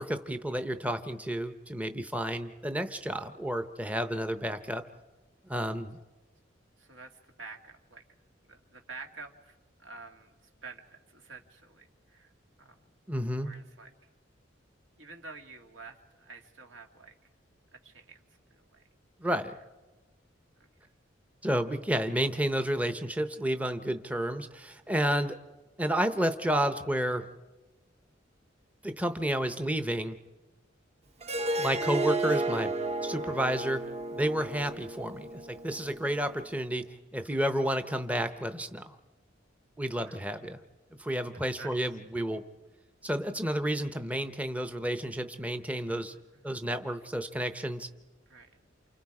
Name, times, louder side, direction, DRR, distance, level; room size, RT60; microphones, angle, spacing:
voice 1, 0.0-4.8 5.5-6.0 13.1-13.5 19.2-19.5 21.4-25.4 25.8-27.2 28.8-30.2 31.6-32.7 33.0-33.8 34.1-36.9 37.1-39.0 39.8-40.6 41.0-42.4 43.0-46.1 46.4-47.9, right 1 dB, 10° right, 9 dB, 0.7 m, -31 dB
voice 2, 3.8-4.2 6.8-8.0 8.5-12.3 12.6-12.8 13.4-13.9 15.0-17.2 17.7-18.2 18.5-18.8 20.6-20.7 24.8-24.9 31.2-31.7 37.2-37.7 40.0-40.2 41.6-41.9 46.3-46.6 48.3-48.6, right 4 dB, 80° right, 3 dB, 2.3 m, -49 dB
Harp, 31.2-36.4, right 2 dB, 35° right, 1.0 m, -33 dB
29.0 x 28.5 x 4.9 m, 1.1 s
head